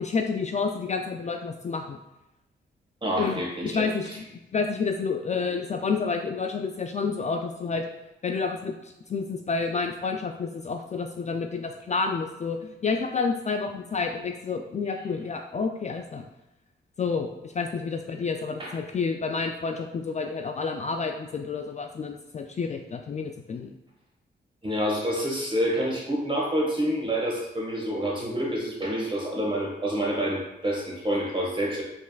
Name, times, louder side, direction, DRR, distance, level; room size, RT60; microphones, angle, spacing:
voice 1, 0.0-2.0 3.2-4.1 4.5-7.8 8.2-16.2 17.0-23.7, left 4 dB, 35° left, 4 dB, 0.4 m, -29 dB
voice 2, 3.0-3.8 18.6-18.8 24.6-31.8, equal, 25° right, -2 dB, 1.5 m, -28 dB
5.2 x 3.5 x 2.3 m, 0.93 s
cardioid pair, 65°, 20 cm